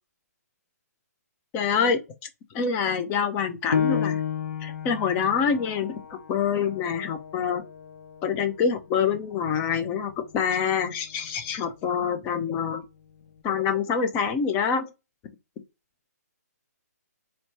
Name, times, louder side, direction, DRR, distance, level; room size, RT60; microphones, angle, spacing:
voice 1, 1.5-2.0 2.5-4.2 4.6-7.6 8.2-12.8 13.4-14.9, left 6 dB, 20° left, 0.5 m, -26 dB
Piano, 3.7-8.9 9.4-9.5 10.1-10.6, left 7 dB, 70° left, 0.5 m, -32 dB
4.3 x 2.2 x 2.9 m
hypercardioid pair, 145°, 9 cm